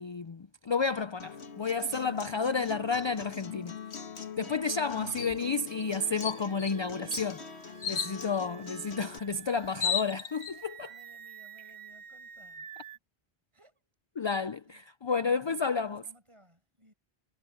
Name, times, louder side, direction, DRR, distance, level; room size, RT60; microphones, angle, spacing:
voice 1, 0.0-3.8 4.4-7.4 7.9-10.9 14.2-16.0, left 4 dB, 40° left, 0.4 m, -31 dB
Acoustic guitar, 1.2-9.2, left 6 dB, 85° left, 1.8 m, -43 dB
sound 1, 5.2-5.4 5.8-5.9 6.2-6.7 7.8-8.1 9.3-9.4 9.6-10.5, left 7 dB, 60° left, 0.9 m, -32 dB
sound 2, 5.9-13.0, right 8 dB, 45° right, 0.8 m, -50 dB
voice 2, 7.9-8.6 9.1-9.8 10.5-12.9 13.5-13.9 14.2-14.9 15.2-16.9, equal, 30° right, 7.4 m, -62 dB
omnidirectional pair, 1.1 m